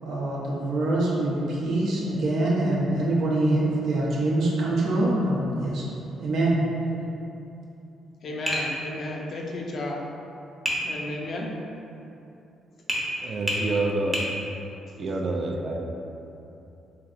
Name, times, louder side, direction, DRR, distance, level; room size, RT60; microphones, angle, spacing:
voice 1, 0.0-5.8 6.2-6.6, right 2 dB, 75° right, -5 dB, 0.8 m, -24 dB
voice 2, 8.2-10.0 10.7-11.5, left 2 dB, 55° left, -1 dB, 0.5 m, -33 dB
Tap, 8.5-8.7 10.7-10.8 12.9-13.1 13.5-13.7 14.1-14.3, equal, 20° right, 0.8 m, -26 dB
voice 3, 13.2-14.1 15.0-15.9, right 2 dB, 45° right, 1 dB, 0.4 m, -27 dB
3.8 x 3.1 x 2.5 m, 2.8 s
cardioid pair, 90°, 0 cm